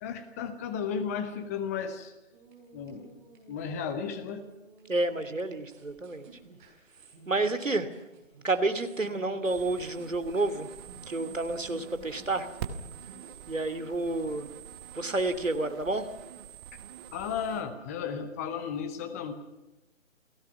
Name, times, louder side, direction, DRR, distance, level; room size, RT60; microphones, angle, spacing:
voice 1, 0.0-2.1 2.7-3.1 3.5-4.5 17.1-19.3, left 7 dB, 10° left, 9 dB, 1.0 m, -34 dB
sound 1, 2.3-13.4, right 4 dB, 40° right, 7.0 m, -54 dB
voice 2, 4.9-6.3 7.3-7.9 8.4-10.7 11.1-12.5 13.5-14.5 14.9-16.1, right 2 dB, 75° right, 10 dB, 2.9 m, -30 dB
sound 2, 9.4-17.6, right 8 dB, 20° right, 1.4 m, -45 dB
29.5 x 18.5 x 5.9 m, 1.0 s
figure-of-eight pair, 140°, 39 cm